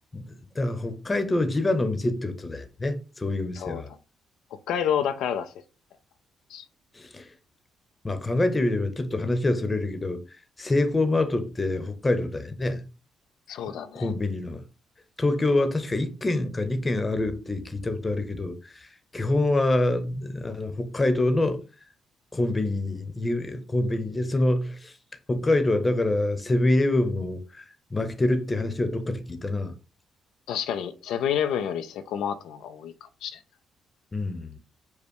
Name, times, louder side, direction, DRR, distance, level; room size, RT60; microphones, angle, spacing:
voice 1, 0.1-3.9 6.9-7.3 8.0-10.2 10.6-12.8 13.9-14.6 15.2-21.6 22.3-24.9 25.3-29.7 34.1-34.6, left 2 dB, 20° left, 0.8 m, -26 dB
voice 2, 4.7-5.5 6.5-6.6 13.5-14.1 30.5-33.4, left 9 dB, 85° left, 0.4 m, -29 dB
5.3 x 2.2 x 4.4 m
cardioid pair, 90°, 0 cm